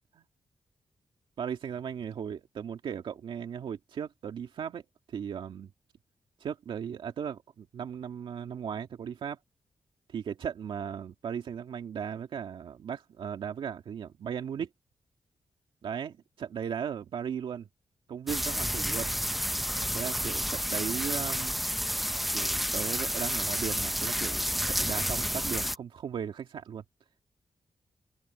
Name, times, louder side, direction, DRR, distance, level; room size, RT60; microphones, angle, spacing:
voice 1, 1.4-4.8 5.1-5.7 6.4-9.4 10.1-14.7 15.8-17.7 18.1-19.1 19.9-21.6 22.3-26.8, right 8 dB, 85° right, 2.2 m, -37 dB
sound 1, 18.3-25.8, equal, ahead, 0.7 m, -30 dB
cardioid pair, 90°, 9 cm